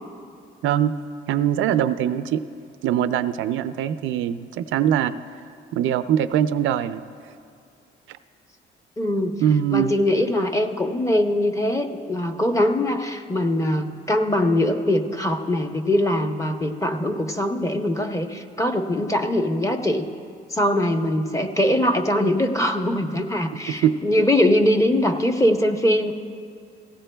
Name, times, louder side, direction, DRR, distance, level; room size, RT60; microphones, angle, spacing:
voice 1, 1.3-2.4 2.8-5.1 5.7-7.0 9.4-9.9 23.7-24.2, right 10 dB, 85° right, 11 dB, 0.4 m, -22 dB
voice 2, 9.0-9.4 9.7-20.0 20.5-26.1, left 1 dB, 15° left, 6 dB, 0.7 m, -22 dB
17.5 x 15.5 x 2.2 m, 2.3 s
cardioid pair, 90°, 20 cm